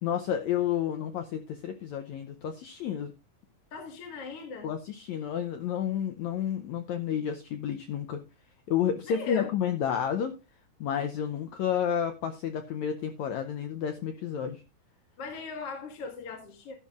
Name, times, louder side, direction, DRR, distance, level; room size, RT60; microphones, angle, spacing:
voice 1, 0.0-3.1 4.6-8.2 8.7-10.3 10.8-14.6, left 9 dB, 90° left, 1.6 m, -30 dB
voice 2, 3.7-4.7 9.1-9.5 15.2-16.7, left 4 dB, 50° left, 2.0 m, -39 dB
12.5 x 11.0 x 2.4 m
omnidirectional pair, 4.3 m